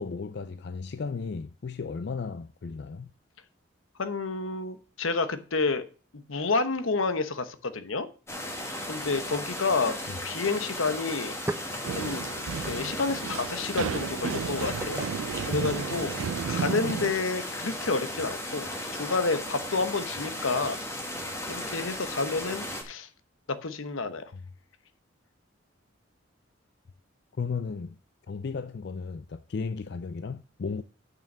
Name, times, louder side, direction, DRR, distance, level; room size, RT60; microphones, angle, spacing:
voice 1, 0.0-3.1 10.1-10.2 27.4-28.0 28.3-30.8, left 5 dB, 55° left, 0.4 m, -34 dB
voice 2, 4.0-5.8 6.1-8.1 8.9-11.3 12.0-12.3 12.7-16.1 16.5-20.8 21.5-23.1 23.5-24.3, left 3 dB, 75° left, 0.9 m, -30 dB
sound 1, 8.3-22.8, left 1 dB, 15° left, 1.4 m, -36 dB
sound 2, 10.8-10.9 11.1-16.3, right 1 dB, 15° right, 0.5 m, -42 dB
sound 3, 11.8-17.1, right 7 dB, 75° right, 0.3 m, -33 dB
6.8 x 6.1 x 7.2 m
head